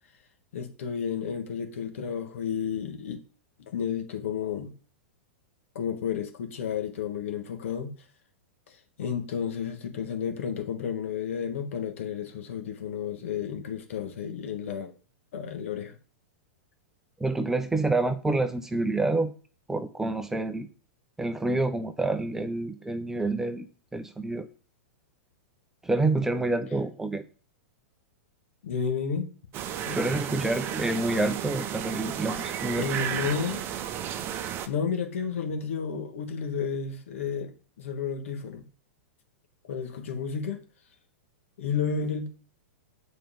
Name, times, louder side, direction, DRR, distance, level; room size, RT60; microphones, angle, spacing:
voice 1, 0.5-3.2 3.6-4.7 5.8-7.9 8.7-14.9 15.3-16.0 28.6-29.3 29.9-30.0 32.7-33.7 34.3-38.6 39.6-40.6 41.6-42.3, left 6 dB, 75° left, 1.7 m, -32 dB
voice 2, 17.2-19.3 19.7-20.7 21.2-24.5 25.8-27.2 29.9-32.9, right 2 dB, 5° right, 0.7 m, -28 dB
sound 1, 29.5-34.7, right 9 dB, 30° right, 0.9 m, -33 dB
7.6 x 4.5 x 5.2 m
hypercardioid pair, 135°, 7 cm